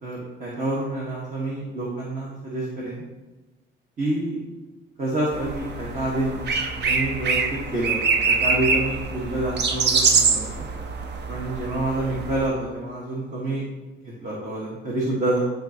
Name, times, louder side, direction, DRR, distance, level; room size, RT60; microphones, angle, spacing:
voice 1, 0.0-3.0 4.0-4.4 5.0-6.4 6.7-10.7 11.3-13.6 14.0-15.4, right 1 dB, 40° right, -4 dB, 1.5 m, -28 dB
sound 1, 5.3-12.5, right 5 dB, 60° right, 0.7 m, -24 dB
11.0 x 3.9 x 2.9 m, 1.1 s
cardioid pair, 90°, 20 cm